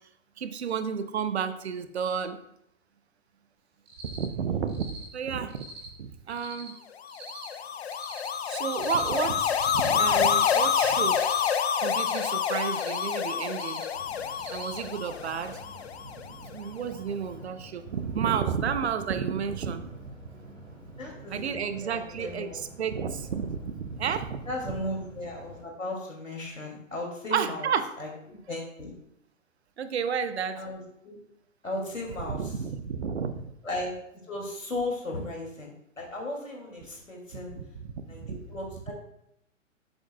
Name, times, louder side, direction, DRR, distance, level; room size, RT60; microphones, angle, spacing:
voice 1, 0.4-2.4 4.0-5.7 6.0-6.8 8.4-11.3 11.8-13.8 14.5-15.6 16.5-19.9 21.3-24.5 27.3-27.9 29.8-30.6 32.3-33.5 37.3-37.6 38.2-38.4, right 7 dB, 55° right, 11 dB, 0.8 m, -31 dB
Cricket, 3.9-4.2 4.7-5.0 5.5-5.9 6.3-6.7 7.1-7.5 7.9-8.3 8.7-9.1 9.5-9.9 10.3-10.7 11.1-11.5 11.9-12.2 12.7-13.0 13.5-13.8 14.3-14.8, right 4 dB, 15° right, 1.4 m, -45 dB
sound 1, 7.1-16.4, left 7 dB, 55° left, 0.7 m, -28 dB
sound 2, 13.9-25.6, right 2 dB, 90° right, 3.1 m, -48 dB
voice 2, 21.0-22.6 24.5-27.7 28.0-28.9 30.6-31.2 31.6-32.5 33.6-33.9 34.2-37.6 38.1-38.2 38.5-38.9, left 1 dB, 85° left, -1 dB, 2.7 m, -36 dB
11.0 x 8.0 x 2.3 m, 0.79 s
figure-of-eight pair, 115°, 38 cm